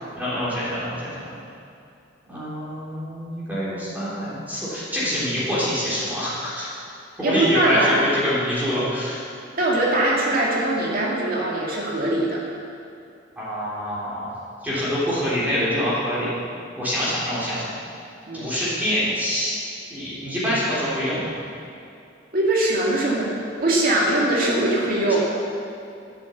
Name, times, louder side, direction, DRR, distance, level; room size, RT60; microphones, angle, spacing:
voice 1, 0.0-1.4 2.3-6.7 7.2-9.3 13.4-14.3 14.6-16.3 16.8-17.6 18.3-19.5 19.9-21.4, equal, 10° right, -10 dB, 3.4 m, -25 dB
voice 2, 7.2-7.9 9.6-12.4 18.3-18.5 22.3-25.3, right 1 dB, 50° right, -4 dB, 2.1 m, -22 dB
11.0 x 8.2 x 7.0 m, 2.6 s
head